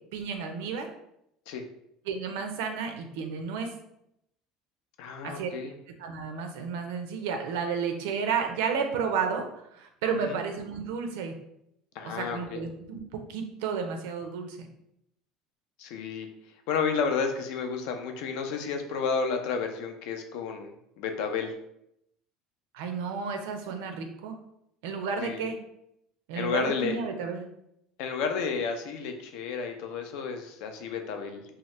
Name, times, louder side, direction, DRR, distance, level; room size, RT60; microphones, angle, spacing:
voice 1, 0.1-0.9 2.1-3.7 5.2-5.5 6.0-9.5 9.7-11.4 12.0-14.7 22.7-24.4 24.8-25.6 26.3-27.4, right 6 dB, 85° right, 5 dB, 0.5 m, -32 dB
voice 2, 5.0-5.8 10.1-10.4 12.0-12.6 15.8-16.3 16.7-21.5 25.2-25.5 26.3-27.0 28.0-31.6, left 5 dB, 65° left, 5 dB, 0.4 m, -31 dB
2.7 x 2.1 x 3.1 m, 0.78 s
cardioid pair, 155°, 0 cm